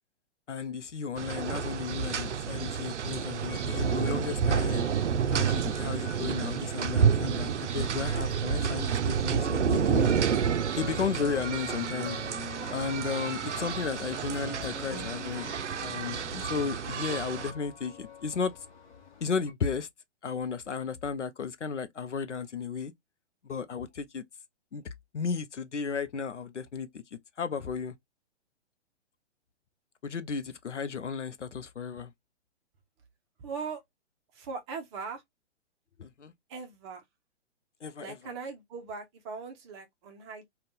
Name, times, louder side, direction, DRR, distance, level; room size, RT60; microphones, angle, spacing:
voice 1, 0.5-4.9 5.3-10.1 10.8-12.2 12.7-15.5 15.8-18.5 19.2-19.9 20.2-22.9 23.4-24.2 24.7-27.0 27.4-27.9 30.0-32.1 36.0-36.3 37.8-38.2, left 6 dB, 85° left, 0.6 m, -34 dB
sound 1, 1.2-17.5, right 7 dB, 80° right, 0.5 m, -29 dB
sound 2, 3.4-19.5, left 6 dB, 45° left, 1.0 m, -50 dB
sound 3, 10.6-16.4, left 2 dB, 20° left, 0.7 m, -44 dB
voice 2, 33.4-33.8 34.3-35.2 36.5-37.0 38.0-40.4, right 5 dB, 25° right, 0.6 m, -40 dB
2.5 x 2.3 x 3.4 m
figure-of-eight pair, 120°, 35 cm